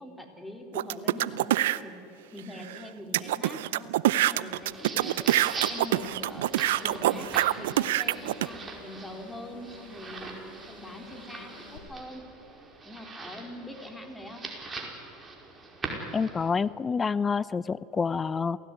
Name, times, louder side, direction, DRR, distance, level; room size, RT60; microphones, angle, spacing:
voice 1, 0.0-2.0 2.3-3.9 4.2-7.3 7.6-10.3 10.7-12.2 12.8-14.5, left 1 dB, 10° left, 4 dB, 4.0 m, -43 dB
sound 1, 0.7-1.8 2.4-2.5 2.7-2.8 3.1-8.5, right 14 dB, 75° right, 0.6 m, -25 dB
sound 2, 4.5-16.5, right 3 dB, 25° right, 4.9 m, -42 dB
sound 3, 5.8-11.8, left 5 dB, 80° left, 5.1 m, -51 dB
voice 2, 16.1-18.6, left 5 dB, 25° left, 19 dB, 0.6 m, -28 dB
28.0 x 16.5 x 9.9 m, 2.8 s
hypercardioid pair, 90°, 0 cm